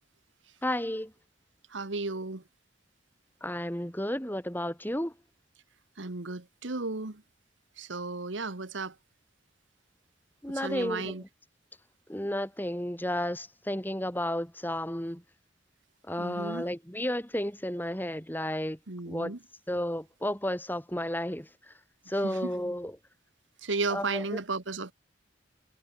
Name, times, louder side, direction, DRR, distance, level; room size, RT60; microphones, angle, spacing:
voice 1, 0.6-1.1 3.4-5.1 10.4-11.1 12.1-15.2 16.1-18.8 19.1-19.3 19.7-21.5 22.1-22.9 23.9-24.4, left 1 dB, 10° left, 3.7 m, -32 dB
voice 2, 1.7-2.4 6.0-7.2 7.8-8.9 10.5-11.2 16.2-16.7 18.9-19.4 22.2-22.5 23.6-24.9, right 3 dB, 80° right, 1.6 m, -34 dB
head